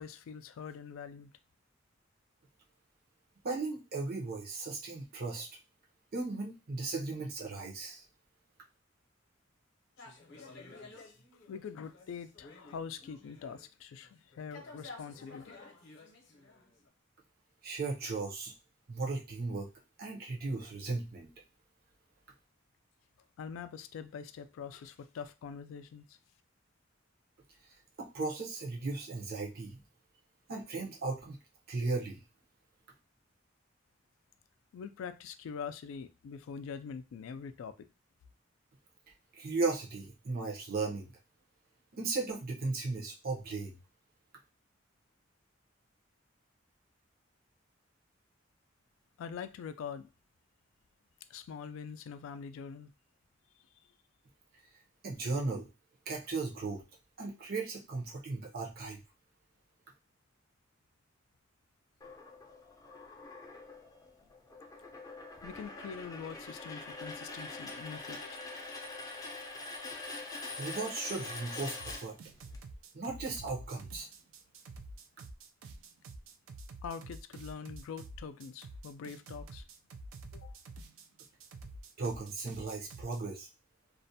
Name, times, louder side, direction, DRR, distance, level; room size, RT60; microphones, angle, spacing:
voice 1, 0.0-1.3 11.5-15.6 23.4-26.2 34.7-37.9 49.2-50.1 51.3-52.9 65.4-68.5 76.8-79.6 80.3-80.6, left 6 dB, 85° left, 0.3 m, -44 dB
voice 2, 3.4-5.5 6.1-8.0 17.6-18.5 18.9-19.7 20.0-21.3 28.0-29.8 30.5-31.4 31.7-32.2 39.3-41.1 41.9-43.8 55.0-55.7 56.1-56.8 57.2-59.0 70.6-72.2 72.9-74.1 82.0-83.5, right 3 dB, 50° right, 0.7 m, -36 dB
sound 1, 10.0-13.7 14.0-16.9, left 3 dB, 60° left, 0.7 m, -52 dB
sound 2, 62.0-72.6, left 3 dB, 20° left, 0.4 m, -44 dB
sound 3, 71.8-83.2, right 2 dB, 85° right, 0.4 m, -48 dB
2.4 x 2.1 x 2.7 m
head